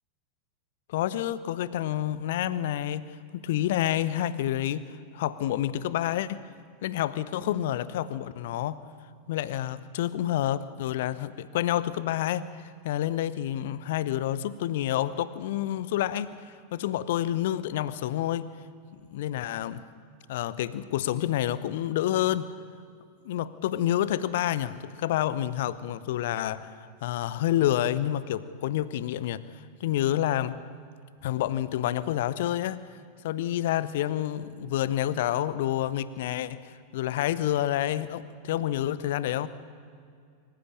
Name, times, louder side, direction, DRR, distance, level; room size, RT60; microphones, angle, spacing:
voice 1, 0.9-6.5 6.8-8.8 9.3-18.5 18.9-19.8 20.3-22.5 23.2-29.4 29.8-30.6 31.2-32.8 33.2-39.5, left 12 dB, 55° left, 16 dB, 0.8 m, -29 dB
24.5 x 15.5 x 8.7 m, 2.3 s
figure-of-eight pair, 90°, 0 cm